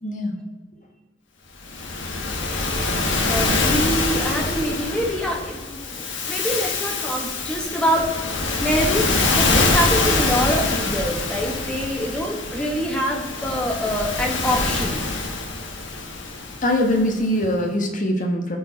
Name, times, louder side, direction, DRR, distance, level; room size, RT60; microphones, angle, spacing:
voice 1, 0.0-0.4 16.6-18.6, left 1 dB, 45° left, 2 dB, 1.5 m, -22 dB
Waves surf, 1.6-17.1, left 3 dB, 70° left, 1.4 m, -24 dB
voice 2, 3.3-8.1 8.6-9.1 9.3-15.0, equal, 5° left, 0 dB, 1.5 m, -25 dB
13.5 x 4.6 x 4.2 m, 1.2 s
head